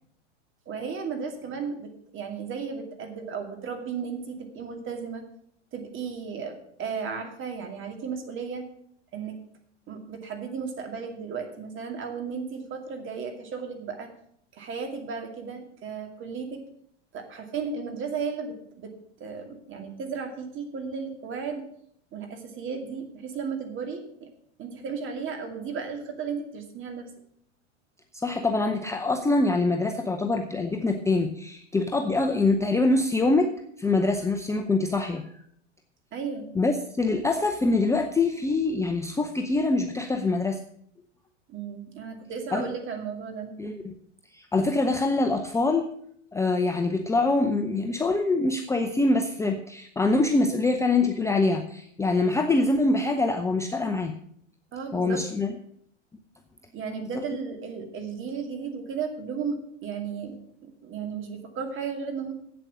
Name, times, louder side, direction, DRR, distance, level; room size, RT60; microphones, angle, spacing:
voice 1, 0.7-5.2 5.7-8.7 9.1-9.4 9.9-14.1 14.5-16.6 17.1-18.9 19.2-21.6 22.1-24.3 24.6-27.1 36.1-36.5 41.5-43.5 54.7-55.2 56.7-60.4 60.6-62.3, right 6 dB, 35° right, 4 dB, 2.4 m, -34 dB
voice 2, 28.1-33.5 33.8-35.2 36.5-40.6 42.5-42.7 43.6-43.9 44.3-45.9 46.3-54.1 54.9-55.6 57.0-57.2, left 3 dB, 10° left, 4 dB, 0.6 m, -24 dB
8.2 x 7.8 x 7.5 m, 0.67 s
hypercardioid pair, 110°, 37 cm